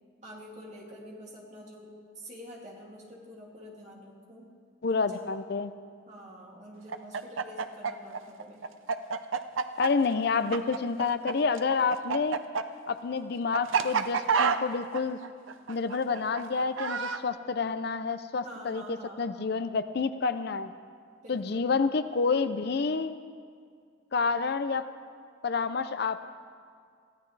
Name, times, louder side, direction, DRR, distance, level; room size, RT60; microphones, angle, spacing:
voice 1, 0.2-4.5 4.9-5.3 6.1-8.6 18.4-19.3 21.2-21.7, equal, 35° right, -3 dB, 2.7 m, -47 dB
voice 2, 4.8-5.7 9.8-12.4 12.9-15.2 15.7-20.7 21.3-23.1 24.1-24.8 25.4-26.3, left 4 dB, 55° left, 11 dB, 0.5 m, -29 dB
Chicken rooster, 6.9-11.3 11.6-17.2, right 5 dB, 80° right, 0.6 m, -29 dB
23.5 x 15.0 x 3.3 m, 2.1 s
head